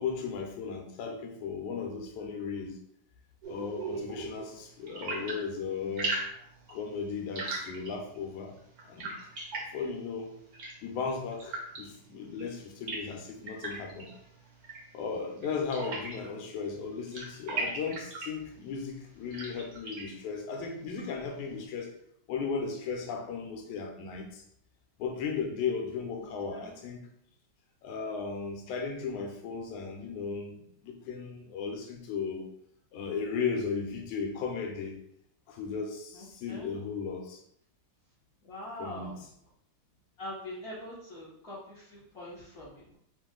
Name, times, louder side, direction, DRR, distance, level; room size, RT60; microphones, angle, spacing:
voice 1, 0.0-2.8 3.5-6.2 6.7-8.6 8.9-9.2 9.7-10.4 10.8-14.1 14.9-21.9 22.3-24.4 25.0-27.1 27.8-32.5 32.9-35.0 35.5-37.4 38.8-39.1, left 5 dB, 80° left, 3 dB, 2.1 m, -36 dB
sound 1, 3.4-21.6, right 3 dB, 80° right, 0.8 m, -41 dB
voice 2, 26.2-26.7 36.1-36.7 38.4-39.2 40.2-43.0, left 1 dB, 50° left, -9 dB, 1.1 m, -44 dB
5.4 x 2.5 x 3.6 m, 0.70 s
omnidirectional pair, 3.5 m